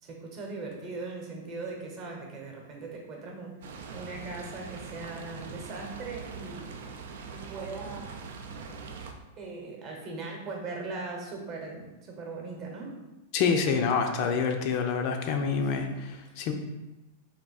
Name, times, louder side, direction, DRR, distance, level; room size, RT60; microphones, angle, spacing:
voice 1, 0.0-6.8 7.3-8.1 9.4-13.0 15.6-16.0 16.3-16.4, right 3 dB, 35° right, 0 dB, 0.9 m, -40 dB
sound 1, 3.6-9.1, right 5 dB, 80° right, 0.5 m, -42 dB
voice 2, 13.3-15.9 16.4-16.5, left 5 dB, 45° left, 4 dB, 0.4 m, -26 dB
3.5 x 2.7 x 4.0 m, 1.0 s
supercardioid pair, 150°, 0 cm